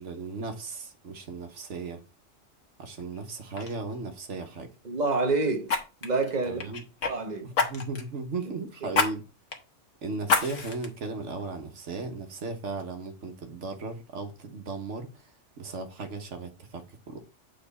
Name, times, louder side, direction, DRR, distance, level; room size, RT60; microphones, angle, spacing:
voice 1, 0.0-2.0 2.8-4.7 6.4-6.8 7.4-9.2 10.0-15.2 15.6-17.2, right 3 dB, 70° right, 1.4 m, -36 dB
Fire, 3.0-3.2 3.5-3.7 5.7-7.1 7.5-8.1 8.9-9.1 9.5-9.6 10.2-10.9 11.4-11.5, left 4 dB, 80° left, 1.5 m, -27 dB
voice 2, 4.8-5.7 6.0-6.7 7.1-7.5 8.5-8.6, right 3 dB, 35° right, 1.1 m, -28 dB
7.6 x 4.0 x 4.0 m
omnidirectional pair, 1.3 m